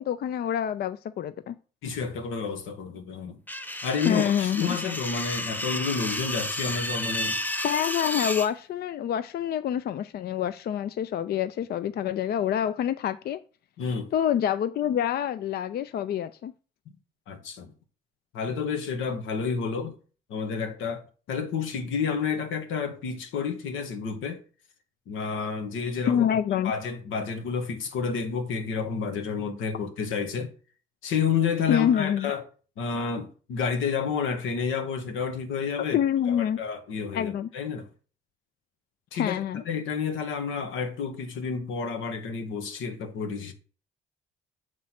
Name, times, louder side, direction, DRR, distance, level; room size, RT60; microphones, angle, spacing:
voice 1, 0.0-1.6 4.0-4.8 7.6-13.4 14.1-16.5 26.1-26.7 31.7-32.3 35.9-36.6 37.1-37.5 39.1-39.6, left 9 dB, 55° left, 0.4 m, -26 dB
voice 2, 1.8-3.4 3.8-7.4 13.8-14.1 17.3-17.7 18.3-19.9 20.3-24.4 25.1-26.3 26.6-30.5 31.0-32.4 32.8-36.0 36.3-37.9 39.1-43.5, left 6 dB, 85° left, 1.1 m, -30 dB
sound 1, 3.5-8.5, left 1 dB, 10° left, 0.6 m, -31 dB
7.4 x 3.2 x 5.7 m
cardioid pair, 90°, 20 cm